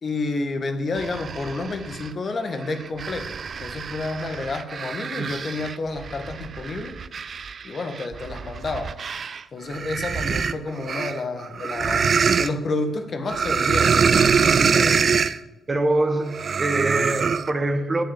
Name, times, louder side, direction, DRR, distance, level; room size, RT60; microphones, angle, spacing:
voice 1, 0.0-3.3 3.6-7.0 7.6-8.9 9.5-15.3, left 3 dB, 45° left, 7 dB, 1.7 m, -30 dB
sound 1, 1.0-2.1 2.6-9.4 9.7-12.5 13.3-15.4 16.3-17.5, right 6 dB, 50° right, 0.6 m, -24 dB
voice 2, 15.7-18.0, right 2 dB, 30° right, 9 dB, 1.5 m, -23 dB
8.4 x 8.1 x 8.3 m, 1.0 s
hypercardioid pair, 45°, 0 cm